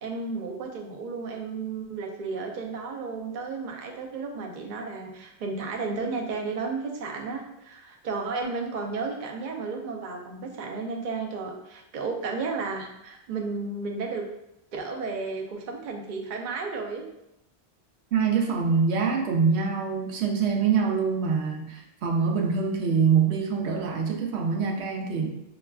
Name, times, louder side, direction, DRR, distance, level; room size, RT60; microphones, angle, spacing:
voice 1, 0.0-14.3 14.7-17.1, right 4 dB, 55° right, 1 dB, 0.6 m, -33 dB
voice 2, 18.1-25.4, right 5 dB, 90° right, 2 dB, 0.9 m, -25 dB
5.4 x 2.3 x 2.3 m, 0.83 s
omnidirectional pair, 1.1 m